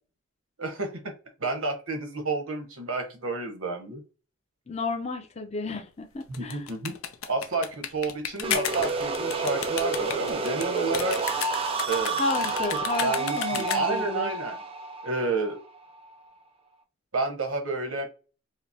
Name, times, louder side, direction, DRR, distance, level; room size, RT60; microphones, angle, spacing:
voice 1, 0.6-1.1 1.4-4.0 6.3-6.9 7.3-11.2 11.9-12.2 13.0-14.6 15.0-15.6 17.1-18.1, right 3 dB, 90° right, 5 dB, 1.1 m, -30 dB
voice 2, 4.7-6.6 12.2-14.3, left 2 dB, 30° left, 4 dB, 0.5 m, -32 dB
sound 1, 6.2-14.1, left 9 dB, 90° left, 0.6 m, -34 dB
sound 2, 8.4-16.1, right 3 dB, 25° right, 0.5 m, -30 dB
4.9 x 2.1 x 2.8 m, 0.34 s
head